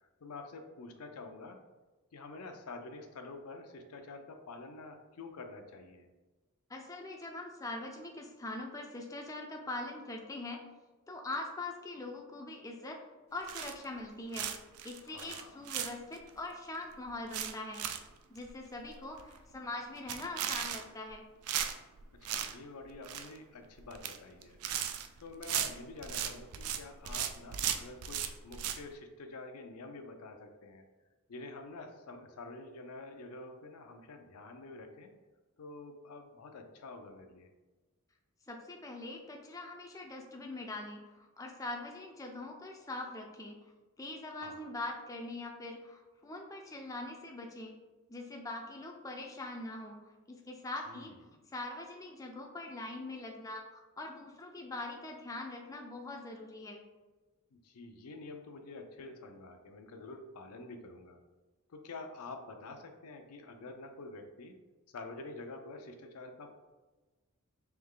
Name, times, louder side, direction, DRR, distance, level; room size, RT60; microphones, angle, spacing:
voice 1, 0.2-1.6 2.1-6.1 15.1-15.6 22.1-24.6 25.2-30.8 31.3-35.1 35.6-37.5 44.3-44.7 50.8-51.2 57.5-61.2 61.7-64.6 64.9-66.5, left 3 dB, 90° left, 5 dB, 0.5 m, -48 dB
voice 2, 6.7-10.7 11.1-13.0 13.3-14.5 14.8-18.0 18.3-21.2 38.5-43.6 44.0-47.7 48.1-51.1 51.5-53.6 54.0-56.8, left 2 dB, 15° left, 1 dB, 0.4 m, -42 dB
sound 1, 13.5-14.0 14.3-16.3 16.7-16.8 17.1-18.1 18.4-18.5 18.9-19.0 19.2-19.5 20.0-21.1 21.5-22.5 22.8-23.4 23.8-24.2 24.4-26.8 27.0-28.8, right 9 dB, 85° right, 0.4 m, -36 dB
3.4 x 3.1 x 3.7 m, 1.2 s
head